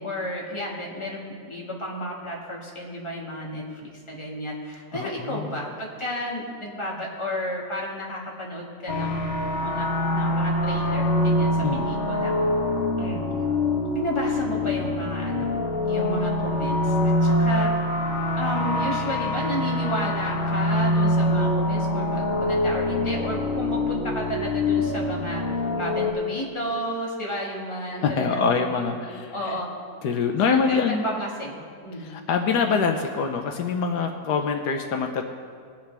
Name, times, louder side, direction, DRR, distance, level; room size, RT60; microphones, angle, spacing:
voice 1, 0.0-9.3 9.6-12.3 13.0-13.2 13.9-15.6 15.8-17.7 18.4-28.9 29.3-29.7 30.5-32.1, equal, 15° left, -3 dB, 1.8 m, -32 dB
voice 2, 4.9-5.5 11.6-11.9 28.0-29.5 30.0-31.1 32.0-35.2, left 5 dB, 75° left, 4 dB, 1.3 m, -25 dB
sound 1, 8.9-26.1, left 1 dB, 40° left, 1.2 m, -24 dB
21.0 x 8.2 x 3.4 m, 2.1 s
omnidirectional pair, 1.8 m